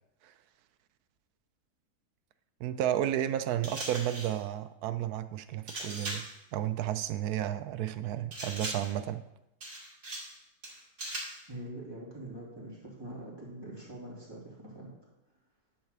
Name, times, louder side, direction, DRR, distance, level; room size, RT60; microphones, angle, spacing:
voice 1, 2.6-6.3 6.5-9.2, right 11 dB, 75° right, 12 dB, 1.0 m, -32 dB
sound 1, 3.6-4.4 5.7-6.4 8.3-9.0 9.6-10.4 10.6-11.4, right 1 dB, 50° right, 2.4 m, -39 dB
voice 2, 11.5-14.9, right 1 dB, 15° right, -6 dB, 2.8 m, -44 dB
10.0 x 4.1 x 6.6 m, 0.89 s
omnidirectional pair, 1.7 m